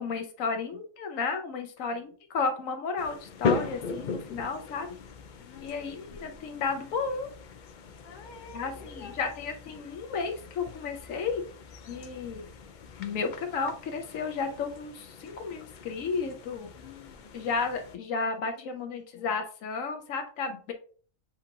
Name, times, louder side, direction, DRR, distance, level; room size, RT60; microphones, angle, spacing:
voice 1, 0.0-4.9 5.6-7.3 8.5-11.4 11.9-12.5 13.0-16.7 17.3-20.7, left 4 dB, 80° left, 5 dB, 1.1 m, -33 dB
sound 1, 3.0-18.0, left 5 dB, 65° left, 0.4 m, -39 dB
voice 2, 5.4-5.8 6.1-6.7 8.0-9.2 9.7-9.8 11.8-12.1 16.7-17.3 18.2-19.3, left 4 dB, 45° left, 2 dB, 1.0 m, -51 dB
7.1 x 2.5 x 2.7 m, 0.42 s
omnidirectional pair, 1.4 m